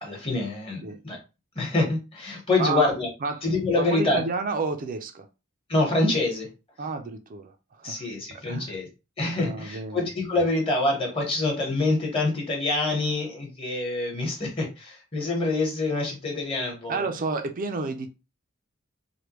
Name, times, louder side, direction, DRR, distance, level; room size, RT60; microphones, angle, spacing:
voice 1, 0.0-1.2 1.5-3.1 3.4-4.2 5.7-6.5 7.8-8.9 9.2-17.0, left 2 dB, 25° left, 1.2 m, -26 dB
voice 2, 3.8-5.3 6.8-7.5 7.8-8.0 8.5-8.7 9.4-10.1 16.9-18.1, right 4 dB, 40° right, 0.4 m, -30 dB
3.3 x 2.2 x 2.9 m
head